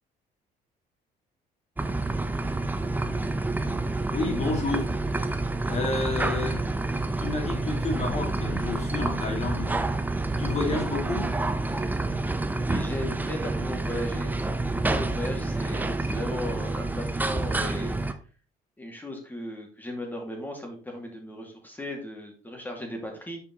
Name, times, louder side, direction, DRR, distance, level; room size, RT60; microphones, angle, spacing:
sound 1, 1.8-18.1, right 2 dB, 10° right, 0.7 m, -28 dB
voice 1, 4.0-4.9 5.7-6.6 7.2-9.8 10.4-11.3, left 3 dB, 40° left, 2 dB, 2.8 m, -30 dB
voice 2, 12.6-17.9 18.8-23.4, left 1 dB, 10° left, 2 dB, 2.5 m, -36 dB
7.2 x 5.2 x 4.0 m, 0.38 s
cardioid pair, 110°, 17 cm